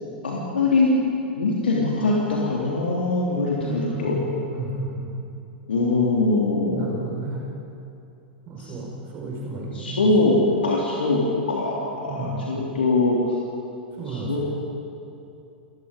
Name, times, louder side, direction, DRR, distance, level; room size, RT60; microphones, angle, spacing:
voice 1, 0.2-1.0 1.3-4.2 5.7-7.0 8.6-8.7 9.7-10.4 10.6-11.2 11.5-13.3 14.0-14.4, left 3 dB, 75° left, -3 dB, 3.1 m, -22 dB
voice 2, 3.6-5.1 6.6-7.4 8.5-10.1 12.1-12.5 14.0-14.4, right 2 dB, 35° right, -2 dB, 4.9 m, -32 dB
29.0 x 19.0 x 5.3 m, 2.7 s
figure-of-eight pair, 95°, 6 cm